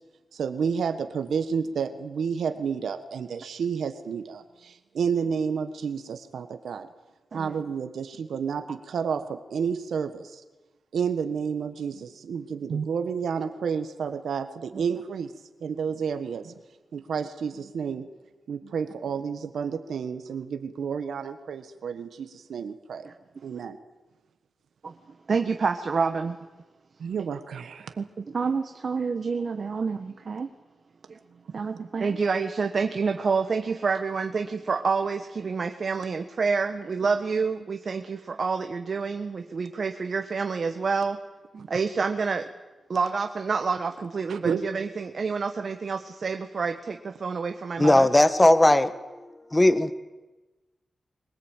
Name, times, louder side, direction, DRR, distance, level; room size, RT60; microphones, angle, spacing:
voice 1, 0.3-6.9 7.3-10.4 10.9-15.3 15.6-16.5 16.9-18.1 18.5-23.1 23.4-23.8 27.0-27.9 44.3-44.6, right 6 dB, 85° right, 8 dB, 1.4 m, -30 dB
voice 2, 25.3-26.4 28.0-30.5 31.1-31.2 31.5-41.2 41.5-42.5 42.9-48.1, right 5 dB, 60° right, 6 dB, 1.4 m, -28 dB
voice 3, 47.8-48.9 49.5-49.9, left 1 dB, 20° left, 12 dB, 1.7 m, -18 dB
22.5 x 19.0 x 9.1 m, 1.2 s
cardioid pair, 60°, 0 cm